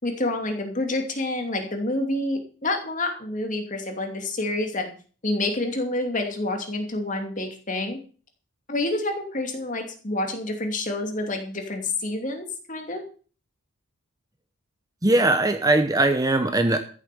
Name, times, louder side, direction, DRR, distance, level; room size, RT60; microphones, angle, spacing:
voice 1, 0.0-4.9 5.2-8.0 8.7-13.0, left 2 dB, 35° left, 4 dB, 2.7 m, -28 dB
voice 2, 15.0-16.8, right 2 dB, 15° right, 8 dB, 0.9 m, -20 dB
14.0 x 7.6 x 6.9 m, 0.41 s
head